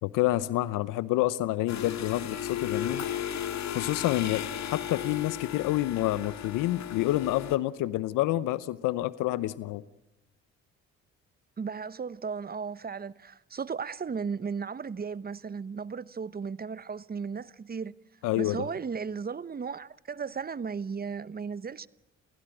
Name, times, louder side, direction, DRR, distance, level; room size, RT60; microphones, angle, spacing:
voice 1, 0.0-3.0 3.7-4.4 4.7-9.8 18.2-18.6, left 16 dB, 85° left, 0.8 m, -28 dB
sound 1, 1.7-7.6, left 10 dB, 60° left, 1.9 m, -35 dB
voice 2, 11.6-17.9 18.4-21.9, right 5 dB, 30° right, 0.9 m, -35 dB
28.5 x 16.0 x 8.9 m
supercardioid pair, 65°, 31 cm